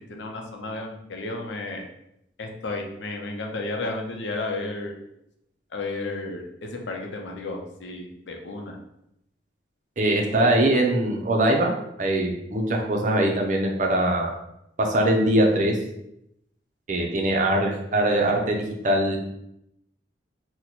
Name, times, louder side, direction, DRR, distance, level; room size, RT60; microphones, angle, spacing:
voice 1, 0.1-1.9 2.4-5.0 5.7-8.8, left 2 dB, 85° left, 2 dB, 0.6 m, -33 dB
voice 2, 10.0-11.7 12.0-14.3 14.8-15.8 16.9-19.2, right 1 dB, 45° right, 1 dB, 0.5 m, -22 dB
2.9 x 2.1 x 4.0 m, 0.80 s
head